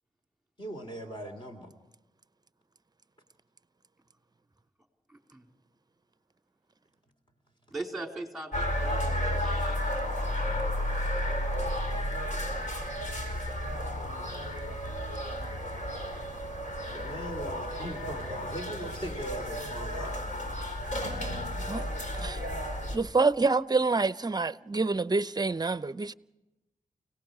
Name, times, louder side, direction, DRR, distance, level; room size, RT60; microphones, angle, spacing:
voice 1, 0.6-1.7 16.9-20.2, right 1 dB, 35° left, 3.0 m, -39 dB
voice 2, 5.1-5.5 7.7-9.8, right 2 dB, ahead, 4.1 m, -40 dB
sound 1, 8.5-23.0, equal, 60° left, 4.9 m, -32 dB
voice 3, 22.9-26.1, right 3 dB, 30° right, 0.7 m, -27 dB
29.5 x 18.5 x 4.9 m
cardioid pair, 75°, 14 cm